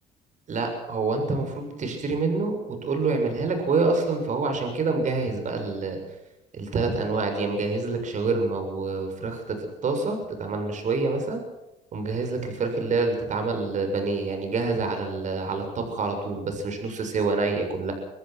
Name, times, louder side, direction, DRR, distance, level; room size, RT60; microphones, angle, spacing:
voice 1, 0.5-6.0 6.5-11.4 11.9-17.9, right 3 dB, 45° right, 5 dB, 7.2 m, -27 dB
24.5 x 19.0 x 6.2 m, 0.96 s
cardioid pair, 110°, 17 cm